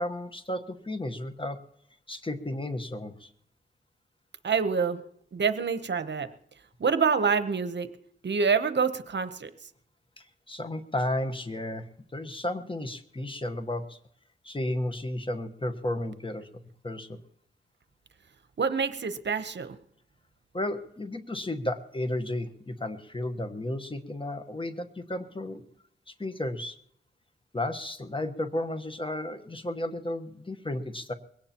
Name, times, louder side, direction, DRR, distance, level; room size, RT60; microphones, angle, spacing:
voice 1, 0.0-1.6 2.1-3.3 10.2-14.0 14.4-16.5 16.8-17.2 20.5-25.6 26.1-26.8 27.5-31.1, left 1 dB, 25° left, 9 dB, 1.1 m, -33 dB
voice 2, 4.4-5.0 5.3-6.3 6.8-7.9 8.2-9.5 18.6-19.8, right 5 dB, 60° right, 11 dB, 0.9 m, -26 dB
21.5 x 17.5 x 2.9 m, 0.70 s
cardioid pair, 65°, 21 cm